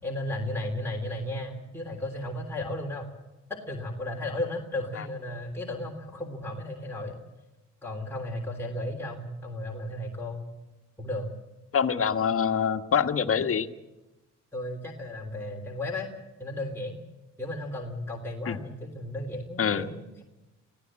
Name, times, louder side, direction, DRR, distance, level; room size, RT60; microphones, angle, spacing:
voice 1, 0.0-3.1 3.5-7.2 7.8-10.4 11.0-11.3 14.5-16.1 16.4-17.0 17.4-20.2, left 1 dB, 10° left, -1 dB, 3.3 m, -34 dB
voice 2, 11.7-13.7 18.5-18.6 19.6-19.9, left 7 dB, 45° left, 7 dB, 1.4 m, -25 dB
22.5 x 16.0 x 7.6 m, 1.0 s
cardioid pair, 90°, 30 cm